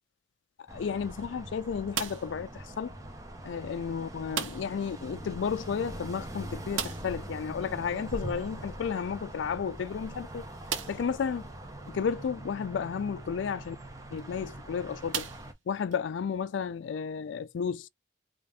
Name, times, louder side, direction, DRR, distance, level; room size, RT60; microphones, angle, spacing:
voice 1, 0.7-2.9 3.4-10.5 10.9-11.5 11.9-13.8 14.1-15.3 15.7-17.9, left 6 dB, 75° left, 0.4 m, -33 dB
sound 1, 0.7-15.5, right 1 dB, 15° right, 0.6 m, -43 dB
sound 2, 1.9-2.5 4.3-4.9 5.1-5.2 5.5-5.6 6.7-7.3 9.0-9.1 9.8-9.9 10.7-11.2 11.9-12.0 14.0-14.2 15.1-16.0, right 8 dB, 85° right, 0.7 m, -36 dB
3.7 x 2.4 x 3.4 m
head